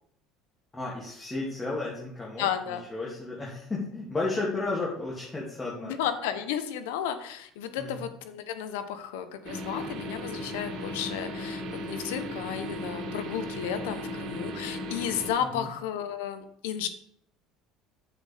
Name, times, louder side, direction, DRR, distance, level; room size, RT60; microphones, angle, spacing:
voice 1, 0.7-2.5 2.9-5.9 7.8-8.0 15.4-15.7, left 3 dB, 15° left, -5 dB, 2.8 m, -33 dB
voice 2, 2.4-2.8 5.8-16.9, left 9 dB, 85° left, 10 dB, 1.1 m, -33 dB
sound 1, 9.4-15.3, left 1 dB, 60° right, 2.8 m, -36 dB
10.5 x 7.3 x 3.6 m, 0.71 s
supercardioid pair, 85°, 0 cm